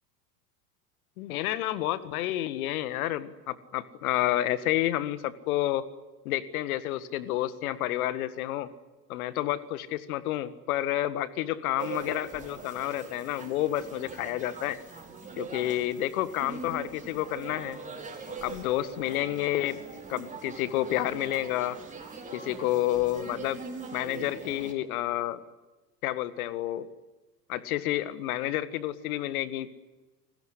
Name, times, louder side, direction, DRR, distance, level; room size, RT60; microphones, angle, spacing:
voice 1, 1.2-5.9 6.2-8.7 9.1-14.8 15.4-17.8 18.4-19.8 20.1-21.8 22.3-23.6 23.9-25.4 26.0-26.9 27.5-29.7, left 14 dB, 55° left, 15 dB, 1.8 m, -30 dB
sound 1, 11.8-24.7, right 4 dB, 15° right, 5.3 m, -42 dB
29.5 x 20.5 x 9.8 m, 1.1 s
figure-of-eight pair, 80°, 50 cm